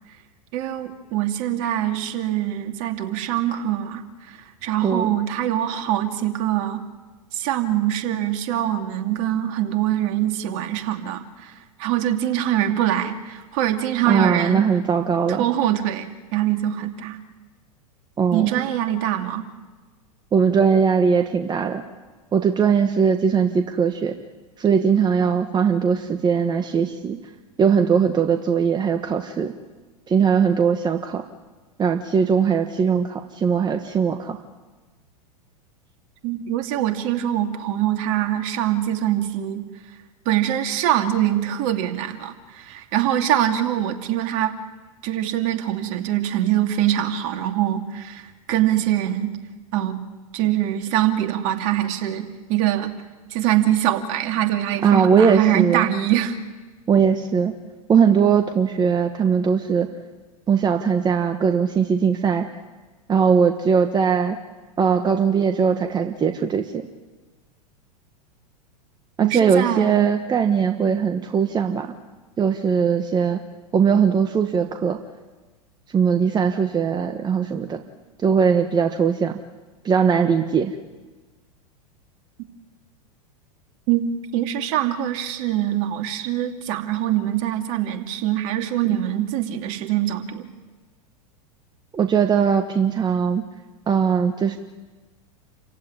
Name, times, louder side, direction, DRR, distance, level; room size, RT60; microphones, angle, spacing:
voice 1, 0.5-6.9 7.3-14.6 15.3-17.2 18.3-19.4 36.2-39.6 40.2-44.6 45.0-49.4 49.7-50.0 50.3-52.9 53.3-56.4 69.2-70.1 83.9-84.0 84.3-90.5, right 12 dB, 50° right, 5 dB, 2.6 m, -23 dB
voice 2, 4.8-5.1 14.1-15.4 18.2-18.6 20.3-21.8 22.3-24.1 24.6-27.2 27.6-29.5 30.1-31.2 31.8-34.4 54.8-55.9 56.9-57.5 57.9-59.9 60.5-62.4 63.1-64.4 64.8-66.8 69.2-71.9 72.4-73.4 73.7-75.0 75.9-77.8 78.2-79.3 79.8-80.7 91.9-93.4 93.9-94.6, right 6 dB, 20° right, 6 dB, 1.5 m, -20 dB
29.0 x 15.5 x 9.8 m, 1.3 s
hypercardioid pair, 100°, 20 cm